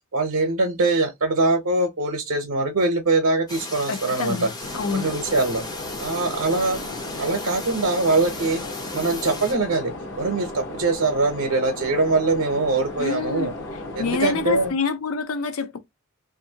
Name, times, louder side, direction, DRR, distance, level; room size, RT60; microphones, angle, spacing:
voice 1, 0.1-4.5 4.9-5.6 6.0-6.8 7.2-8.6 8.9-9.9 10.2-13.5 13.9-14.7, right 3 dB, 70° right, 0.7 m, -22 dB
sound 1, 3.5-9.5, left 2 dB, 20° left, 0.5 m, -36 dB
voice 2, 3.9-5.1 13.0-13.5 14.0-15.8, left 4 dB, 75° left, 0.5 m, -27 dB
sound 2, 4.6-14.7, left 2 dB, 60° left, 0.8 m, -35 dB
2.5 x 2.5 x 2.7 m
head